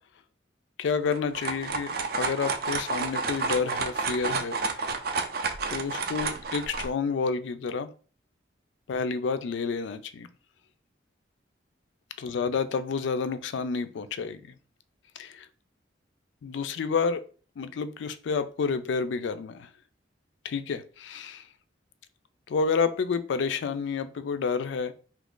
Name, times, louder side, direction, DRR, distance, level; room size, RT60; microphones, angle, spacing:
voice 1, 0.8-4.6 4.8-4.9 5.7-7.9 8.9-10.3 12.2-14.4 15.2-15.5 16.4-17.2 17.6-19.7 20.4-21.4 22.5-24.9, left 5 dB, 75° left, 0.3 m, -29 dB
sound 1, 1.1-6.9, right 4 dB, 50° right, 0.4 m, -30 dB
2.8 x 2.4 x 3.6 m
head